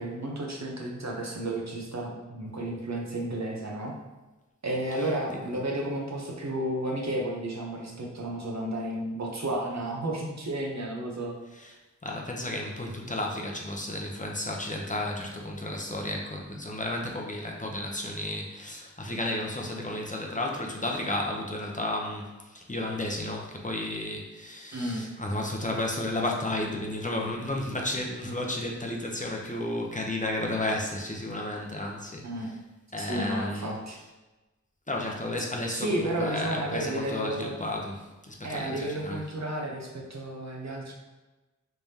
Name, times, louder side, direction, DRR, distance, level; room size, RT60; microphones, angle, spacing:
voice 1, 0.0-3.9 4.6-11.4 24.7-25.0 32.2-32.5 33.0-34.0 35.7-37.5 38.4-40.9, right 1 dB, 60° right, -1 dB, 0.7 m, -32 dB
voice 2, 5.0-5.5 11.5-11.8 12.0-32.3 32.9-33.7 34.9-39.2, left 1 dB, 25° left, -1 dB, 0.6 m, -33 dB
3.4 x 3.3 x 2.8 m, 1.1 s
wide cardioid pair, 40°, 30 cm